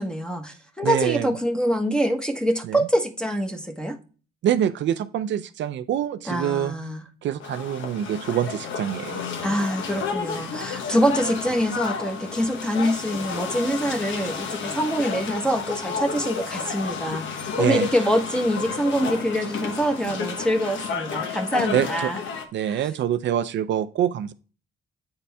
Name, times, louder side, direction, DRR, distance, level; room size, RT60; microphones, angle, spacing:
voice 1, 0.0-4.0 6.3-7.0 9.4-22.2 22.7-22.8, equal, 5° left, 1.2 m, -25 dB
voice 2, 0.8-1.3 2.6-2.8 4.4-6.7 7.2-9.3 17.6-17.9 21.7-22.1 22.5-24.3, right 10 dB, 65° right, 0.5 m, -25 dB
sound 1, 7.4-22.5, left 6 dB, 70° left, 1.1 m, -31 dB
8.7 x 4.2 x 3.4 m
cardioid pair, 90°, 20 cm